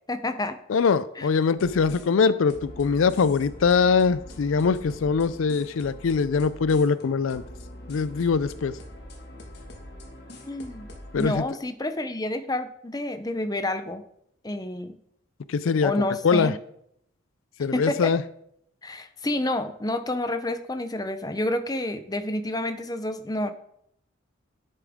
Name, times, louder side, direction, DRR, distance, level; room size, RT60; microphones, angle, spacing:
voice 1, 0.1-0.6 1.2-1.3 10.4-10.9 11.1-14.0 14.4-15.0 15.8-16.5 17.7-18.1 18.8-23.5, left 1 dB, 20° left, 9 dB, 0.6 m, -29 dB
voice 2, 0.7-7.4 7.9-8.7 11.1-11.4 15.5-15.9 16.2-16.5 17.6-18.2, left 5 dB, 80° left, 16 dB, 0.4 m, -22 dB
sound 1, 1.6-11.3, left 1 dB, 50° left, 1.8 m, -43 dB
10.5 x 8.4 x 3.6 m, 0.72 s
head